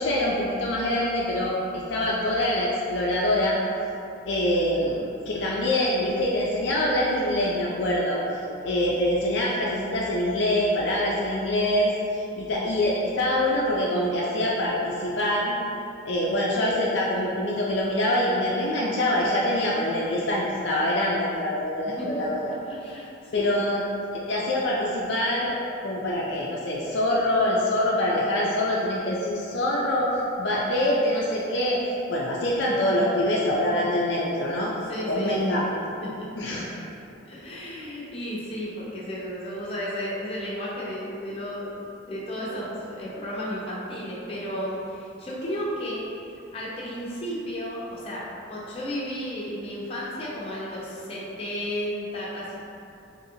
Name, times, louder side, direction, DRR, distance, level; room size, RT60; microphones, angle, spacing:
voice 1, 0.0-3.6 4.3-5.0 5.3-15.6 16.1-22.5 23.3-23.9 24.3-25.6 25.8-31.8 32.1-34.7 35.1-35.7 36.4-36.7, left 1 dB, 60° left, -5 dB, 0.4 m, -25 dB
voice 2, 4.9-5.2 22.0-22.2 22.7-23.5 33.0-33.1 34.9-35.4 36.0-36.3 37.3-46.0 46.5-52.5, equal, 30° left, -7 dB, 0.7 m, -33 dB
4.0 x 2.8 x 2.7 m, 2.7 s
head